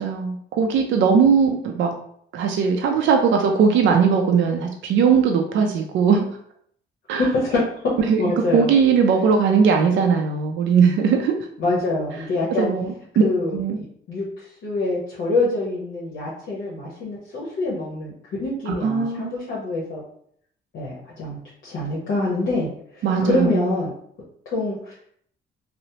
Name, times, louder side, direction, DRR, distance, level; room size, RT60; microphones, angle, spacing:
voice 1, 0.0-1.9 2.3-6.3 7.1-7.3 8.1-8.2 8.5-11.3 12.6-13.2 13.5-13.8 18.7-19.4 23.0-23.7, right 6 dB, 75° right, 3 dB, 0.4 m, -19 dB
voice 2, 7.2-7.6 8.2-8.7 11.6-12.7 13.2-18.1 18.4-20.0 20.7-22.7 22.9-23.9 24.5-24.9, left 2 dB, 75° left, -6 dB, 0.9 m, -25 dB
3.0 x 2.0 x 2.7 m, 0.64 s
cardioid pair, 90°, 20 cm